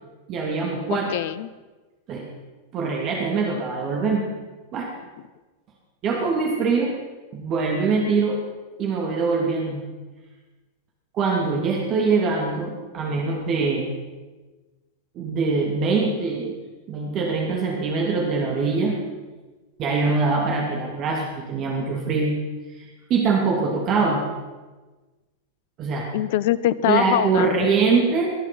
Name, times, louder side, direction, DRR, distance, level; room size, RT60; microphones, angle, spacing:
voice 1, 0.3-1.1 2.1-2.3 2.7-4.3 4.7-4.9 6.0-6.9 7.3-8.4 8.8-9.9 11.1-14.0 15.1-16.6 16.9-19.0 19.8-22.4 22.8-22.9 23.1-24.2 25.8-26.1 26.9-28.3, right 4 dB, 35° right, 0 dB, 2.7 m, -23 dB
voice 2, 0.9-1.5 26.1-27.7, left 13 dB, 50° left, 17 dB, 0.6 m, -23 dB
21.5 x 11.0 x 5.7 m, 1.2 s
figure-of-eight pair, 90°, 0 cm